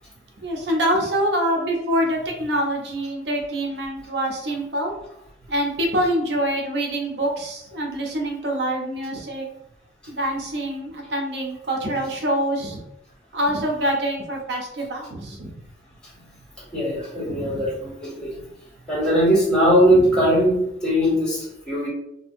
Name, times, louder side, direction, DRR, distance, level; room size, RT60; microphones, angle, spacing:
voice 1, 0.4-4.9 5.5-9.5 10.1-12.8 13.3-15.6 17.3-17.7 19.9-20.1, right 1 dB, 70° right, 0 dB, 0.5 m, -25 dB
voice 2, 16.7-18.5 18.9-21.9, equal, 5° left, -10 dB, 1.4 m, -20 dB
2.7 x 2.4 x 2.6 m, 0.82 s
head